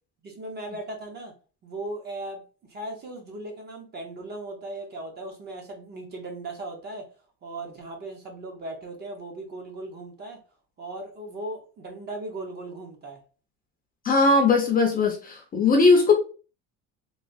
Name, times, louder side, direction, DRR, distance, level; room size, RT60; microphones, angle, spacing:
voice 1, 0.2-1.3 1.6-2.4 2.7-7.1 7.4-10.4 10.8-13.2, right 2 dB, 30° right, 2 dB, 0.7 m, -37 dB
voice 2, 14.0-16.2, left 3 dB, 25° left, 2 dB, 0.6 m, -19 dB
3.1 x 2.3 x 2.5 m, 0.35 s
cardioid pair, 160°, 32 cm